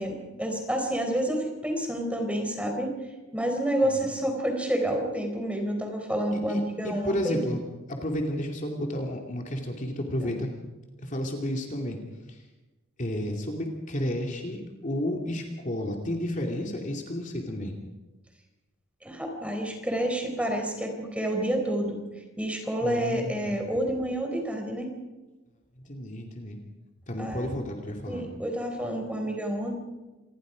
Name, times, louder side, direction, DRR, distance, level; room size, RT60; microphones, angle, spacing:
voice 1, 0.0-2.9 3.3-7.4 19.0-22.0 22.4-24.9 27.2-27.5 28.1-29.8, right 1 dB, 5° right, 3 dB, 4.1 m, -29 dB
voice 2, 6.3-7.6 7.9-10.5 11.0-12.0 12.3-12.4 13.0-17.8 22.8-23.6 25.8-26.6 27.1-28.3, left 1 dB, 40° left, 2 dB, 2.6 m, -32 dB
27.5 x 20.5 x 5.2 m, 1.1 s
head